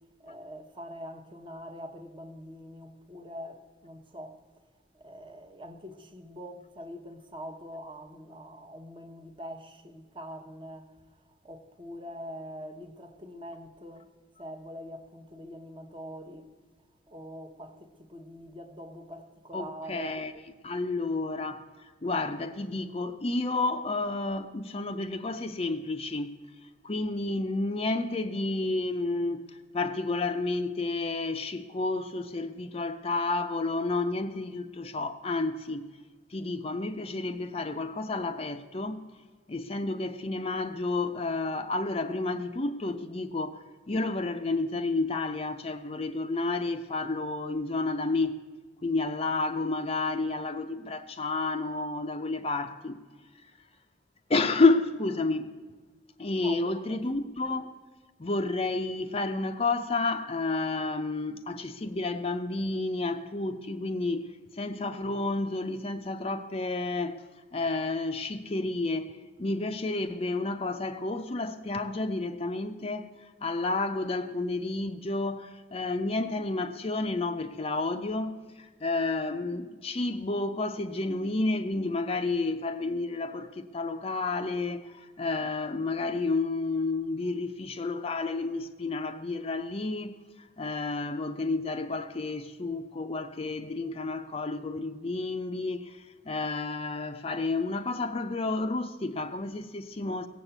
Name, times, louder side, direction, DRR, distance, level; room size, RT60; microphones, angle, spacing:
voice 1, 0.2-4.5 4.9-11.0 11.2-14.1 14.4-16.5 17.1-20.2 56.4-57.0, equal, 25° right, 0.9 m, -44 dB
voice 2, 19.5-20.3 20.6-26.3 26.6-35.9 36.3-39.0 39.5-48.4 48.8-53.0 54.3-55.5 56.2-57.7 58.2-64.3 64.5-67.2 67.5-100.3, left 3 dB, 30° left, 0.5 m, -31 dB
16.5 x 7.3 x 8.0 m
head